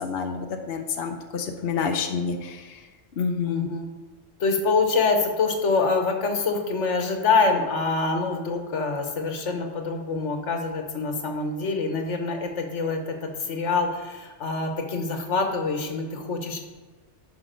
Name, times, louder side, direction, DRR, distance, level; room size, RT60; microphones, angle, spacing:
voice 1, 0.0-2.8 3.2-3.7, left 6 dB, 60° left, 4 dB, 1.0 m, -28 dB
voice 2, 3.4-3.9 4.4-13.0 13.5-16.6, left 4 dB, 85° left, 4 dB, 1.5 m, -25 dB
10.0 x 5.8 x 5.1 m, 1.3 s
omnidirectional pair, 1.2 m